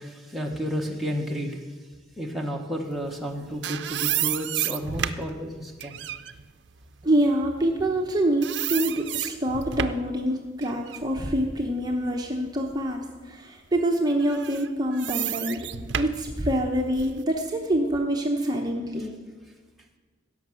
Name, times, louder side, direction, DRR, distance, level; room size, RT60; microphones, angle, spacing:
voice 1, 0.0-1.6 2.2-6.0, equal, ahead, -1 dB, 1.0 m, -32 dB
sound 1, 3.2-8.1 8.4-10.1 10.6-12.6 13.0-13.2 14.2-17.2, right 11 dB, 65° right, 0.5 m, -32 dB
voice 2, 7.0-13.0 13.3-15.6 15.9-19.1, right 1 dB, 20° right, 1 dB, 0.9 m, -26 dB
16.5 x 6.0 x 6.3 m, 1.4 s
head